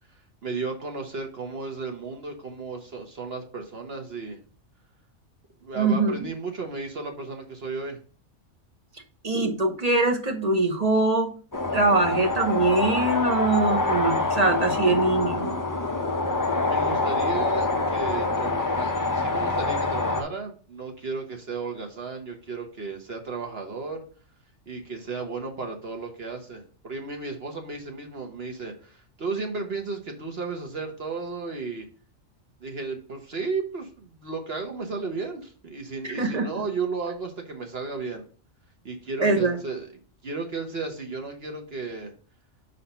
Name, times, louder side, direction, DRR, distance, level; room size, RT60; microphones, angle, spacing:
voice 1, 0.4-4.4 5.6-8.0 16.6-24.0 24.7-31.9 32.6-38.2 38.8-39.9 40.2-42.1, right 4 dB, 50° right, 3 dB, 1.3 m, -34 dB
voice 2, 5.8-6.2 9.2-11.3 11.7-15.6 36.0-36.5 39.2-39.6, right 2 dB, 35° right, 4 dB, 0.9 m, -23 dB
sound 1, 11.5-20.2, left 3 dB, 20° left, 0.6 m, -26 dB
5.6 x 4.1 x 5.4 m, 0.41 s
omnidirectional pair, 1.3 m